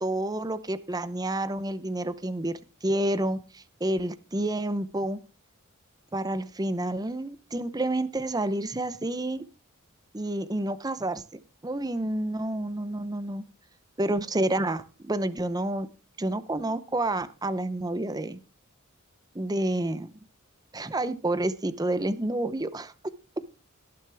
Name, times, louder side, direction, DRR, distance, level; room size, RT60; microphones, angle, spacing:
voice 1, 0.0-2.5 2.8-5.2 6.1-9.4 10.1-11.2 11.6-13.4 14.0-15.9 16.2-18.4 19.3-20.1 20.7-22.9, right 1 dB, 20° right, 14 dB, 0.7 m, -29 dB
18.5 x 6.7 x 3.4 m, 0.35 s
head